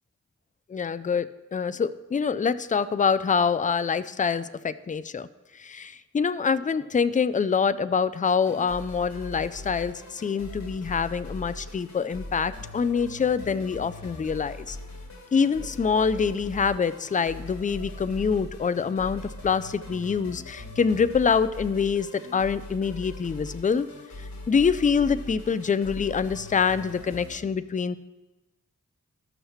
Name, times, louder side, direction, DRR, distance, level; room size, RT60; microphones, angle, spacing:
voice 1, 0.7-5.3 5.6-14.8 15.3-23.9 24.5-28.0, left 6 dB, 25° left, 14 dB, 0.4 m, -25 dB
sound 1, 8.4-27.4, left 2 dB, 60° left, 1.4 m, -41 dB
14.0 x 6.4 x 3.1 m, 1.1 s
cardioid pair, 55°, 31 cm